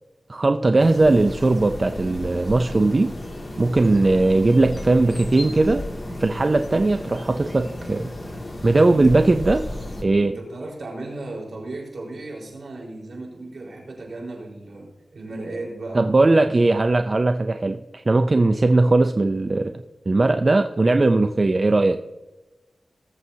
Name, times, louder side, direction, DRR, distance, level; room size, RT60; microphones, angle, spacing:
voice 1, 0.3-3.1 3.6-5.8 6.2-8.1 8.6-9.6 10.0-10.3 15.9-22.0, right 2 dB, 40° right, 7 dB, 0.5 m, -19 dB
sound 1, 0.8-10.0, left 1 dB, 30° left, 2.4 m, -34 dB
voice 2, 8.9-9.2 10.2-14.9 15.1-16.6 18.9-19.1, right 2 dB, 70° right, -2 dB, 4.3 m, -35 dB
19.5 x 7.7 x 2.8 m, 1.1 s
cardioid pair, 60°, 0 cm